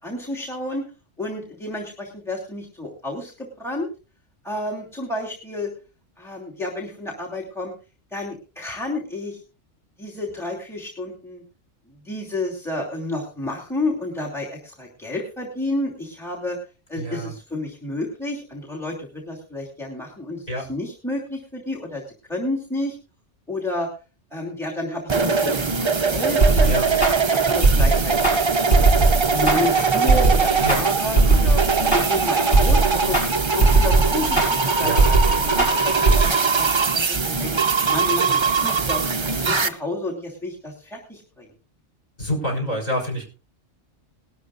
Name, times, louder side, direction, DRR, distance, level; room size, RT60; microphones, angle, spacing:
voice 1, 0.0-0.8 1.2-3.9 4.4-5.7 6.2-7.7 8.1-9.4 10.0-11.4 12.0-16.6 16.9-22.0 22.3-22.9 23.5-23.9 24.3-26.7 27.1-28.2 28.6-28.9 29.3-31.6 31.9-33.2 33.5-35.2 35.4-37.5 37.9-39.1 39.3-41.5, left 2 dB, ahead, 0 dB, 2.7 m, -30 dB
voice 2, 17.0-17.3 20.5-20.7 26.6-26.9 30.6-30.8 34.8-35.0 42.2-43.2, equal, 30° left, 2 dB, 5.6 m, -26 dB
sound 1, 25.1-39.7, right 4 dB, 30° right, 0.6 m, -21 dB
sound 2, 26.4-36.2, right 3 dB, 50° left, 5.7 m, -19 dB
19.5 x 12.5 x 2.6 m, 0.33 s
omnidirectional pair, 1.3 m